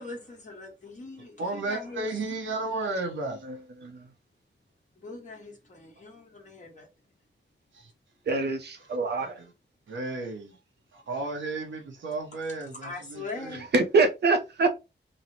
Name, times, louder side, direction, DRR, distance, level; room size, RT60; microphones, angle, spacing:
voice 1, 0.0-2.1 5.0-6.9 12.8-13.7, left 3 dB, 40° left, 1.1 m, -41 dB
voice 2, 1.2-3.6 7.7-7.9 9.2-9.5 9.9-10.6 10.9-13.6, right 2 dB, 90° right, 0.8 m, -34 dB
voice 3, 8.3-9.3 13.5-14.7, right 3 dB, 60° right, 0.5 m, -24 dB
3.1 x 2.0 x 2.6 m
wide cardioid pair, 125°, 19 cm